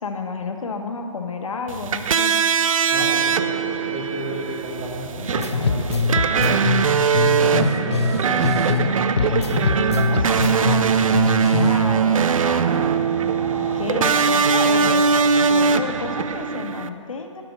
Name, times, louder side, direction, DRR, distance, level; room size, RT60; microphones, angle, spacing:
voice 1, 0.0-2.3 9.1-13.2 13.7-15.1 15.4-17.4, left 4 dB, 90° left, 4 dB, 1.0 m, -31 dB
sound 1, 1.7-16.9, right 6 dB, 90° right, 0.4 m, -21 dB
voice 2, 2.9-6.9 7.4-8.4, equal, 25° right, -3 dB, 1.0 m, -32 dB
sound 2, 5.4-8.9 9.2-11.9, left 5 dB, 55° left, 0.5 m, -23 dB
sound 3, 8.5-16.2, right 1 dB, 55° right, 1.8 m, -35 dB
7.9 x 5.9 x 5.2 m, 2.2 s
hypercardioid pair, 180°, 17 cm